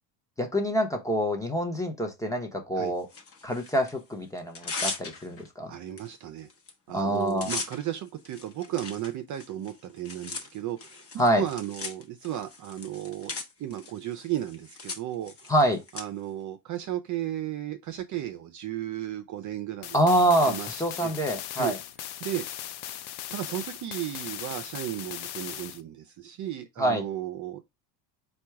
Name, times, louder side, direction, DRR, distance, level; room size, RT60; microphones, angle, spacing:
voice 1, 0.4-3.1 3.4-5.8 6.9-7.5 11.2-11.4 15.5-15.8 19.9-21.8 26.8-27.0, right 1 dB, 5° left, 0.8 m, -26 dB
Tearing, 3.1-3.9 4.4-5.5 6.0-6.1 6.4-6.7 7.0-16.0, left 4 dB, 30° left, 1.0 m, -39 dB
voice 2, 5.7-6.5 6.9-13.3 13.6-15.5 15.9-20.0 20.5-21.1 21.6-21.7 22.2-22.5 23.3-27.6, right 12 dB, 40° right, 0.5 m, -34 dB
sound 1, 19.8-25.8, left 11 dB, 55° left, 0.6 m, -38 dB
4.4 x 2.3 x 4.5 m
supercardioid pair, 115°, 48 cm